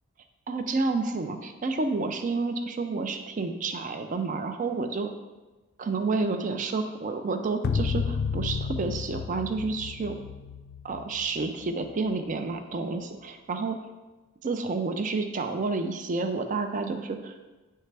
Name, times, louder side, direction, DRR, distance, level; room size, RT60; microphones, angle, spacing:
voice 1, 0.5-5.1 5.8-10.2 10.8-13.9 14.4-17.4, right 3 dB, 35° right, 7 dB, 0.4 m, -30 dB
sound 1, 7.6-12.1, left 5 dB, 50° left, 0.3 m, -32 dB
9.3 x 3.3 x 3.3 m, 1.2 s
head